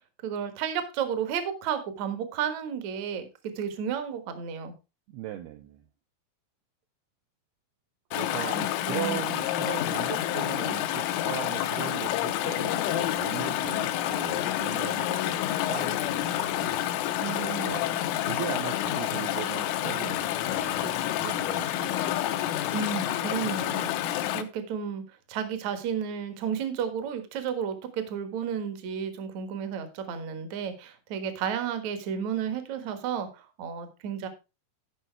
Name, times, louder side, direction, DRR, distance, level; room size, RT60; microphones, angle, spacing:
voice 1, 0.0-3.3 3.6-4.7 8.4-9.2 17.2-17.8 22.7-25.0 25.3-34.3, right 7 dB, 60° right, 8 dB, 1.9 m, -32 dB
voice 2, 5.1-5.8 8.1-8.6 8.9-16.8 17.1-22.0, right 12 dB, 85° right, 5 dB, 2.3 m, -39 dB
Chatter / Stream, 8.1-24.4, left 12 dB, 85° left, 3.5 m, -29 dB
13.5 x 5.6 x 4.5 m, 0.29 s
omnidirectional pair, 5.5 m